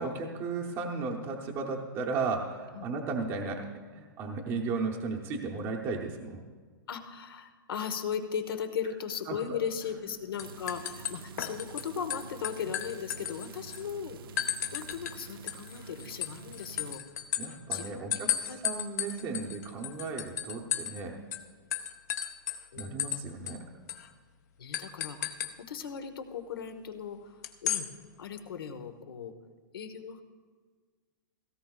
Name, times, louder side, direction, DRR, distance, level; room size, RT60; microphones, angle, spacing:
voice 1, 0.0-6.4 9.3-9.6 9.9-10.0 17.4-21.2 22.8-23.6, right 4 dB, 20° right, 0 dB, 0.7 m, -35 dB
voice 2, 6.9-14.2 14.7-17.0 17.7-18.6 19.2-19.4 22.7-23.3 24.6-25.4 25.7-27.9 28.2-29.3 29.7-30.2, left 7 dB, 90° left, 7 dB, 1.2 m, -37 dB
sound 1, 9.8-10.1 10.4-11.8 12.1-13.8 14.4-15.2 15.5-21.0 21.3-21.4 21.7-23.2 23.5-23.6 23.9-24.1 24.7-25.5 27.4-27.9, left 10 dB, 50° left, 0.8 m, -34 dB
sound 2, 10.4-17.0, right 5 dB, 80° right, 0.7 m, -48 dB
17.0 x 14.5 x 2.4 m, 1.5 s
hypercardioid pair, 165°, 12 cm